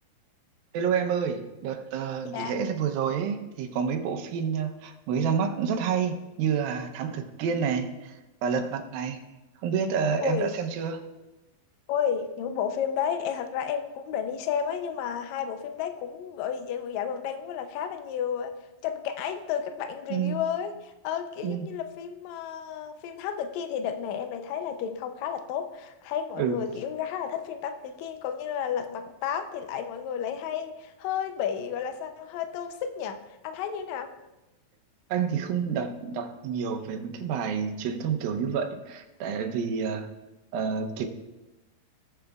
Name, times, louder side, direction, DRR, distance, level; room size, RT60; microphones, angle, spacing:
voice 1, 0.7-9.2 9.6-11.0 20.1-20.4 21.4-21.7 26.4-26.6 35.1-40.1 40.5-41.1, right 6 dB, 90° right, 6 dB, 2.6 m, -29 dB
voice 2, 11.9-18.5 18.8-33.2 33.4-34.1, left 8 dB, 85° left, 7 dB, 1.6 m, -32 dB
18.5 x 7.9 x 2.3 m, 1.0 s
omnidirectional pair, 4.1 m